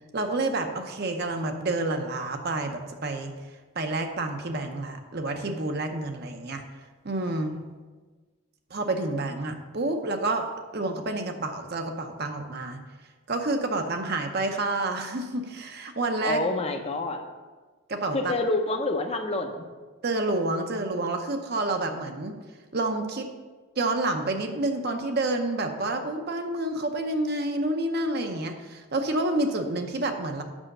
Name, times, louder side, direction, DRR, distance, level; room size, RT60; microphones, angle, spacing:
voice 1, 0.1-3.3 3.7-6.6 7.0-7.5 8.7-10.5 10.7-12.8 13.3-16.4 17.9-18.3 20.0-22.3 22.7-23.3 23.8-30.4, right 2 dB, 45° right, 5 dB, 0.7 m, -29 dB
voice 2, 16.2-17.2 18.1-19.6, left 2 dB, 30° left, 5 dB, 0.6 m, -27 dB
6.2 x 5.6 x 6.6 m, 1.4 s
head